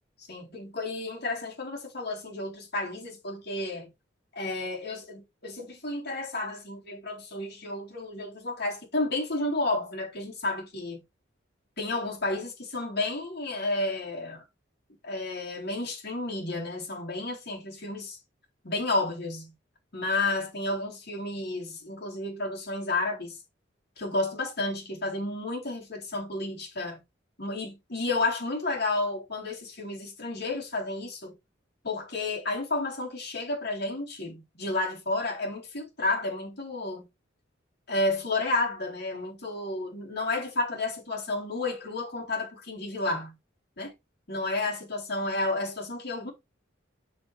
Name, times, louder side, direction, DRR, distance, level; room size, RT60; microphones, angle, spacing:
voice 1, 0.2-3.9 4.3-11.0 11.8-14.4 15.0-18.2 18.6-19.5 19.9-23.4 24.0-27.0 27.4-31.3 31.8-37.1 37.9-43.4 43.8-43.9 44.3-46.3, left 2 dB, 60° left, 4.3 m, -31 dB
8.2 x 6.9 x 3.5 m
head